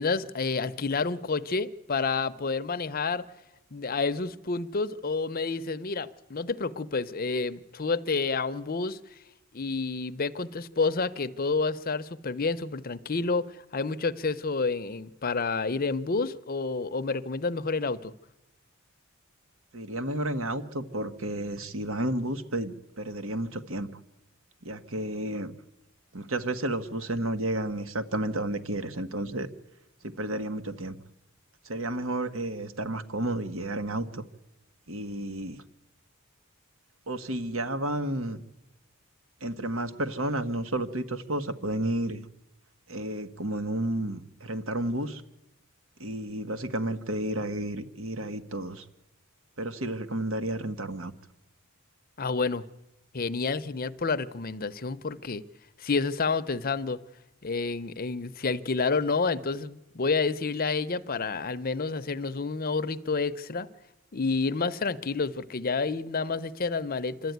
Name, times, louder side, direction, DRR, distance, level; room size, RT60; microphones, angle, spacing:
voice 1, 0.0-3.2 3.7-9.0 9.5-18.1 52.2-52.6 53.1-55.4 55.8-57.0 57.4-63.7 64.1-67.3, left 4 dB, 45° left, 13 dB, 0.7 m, -29 dB
voice 2, 19.7-24.0 24.6-25.5 26.1-29.5 30.0-31.0 31.6-34.2 34.9-35.6 37.1-38.4 39.4-42.2 42.9-45.2 46.0-48.8 49.6-51.1, right 1 dB, 70° right, 9 dB, 1.4 m, -31 dB
26.5 x 12.5 x 9.3 m, 0.95 s
head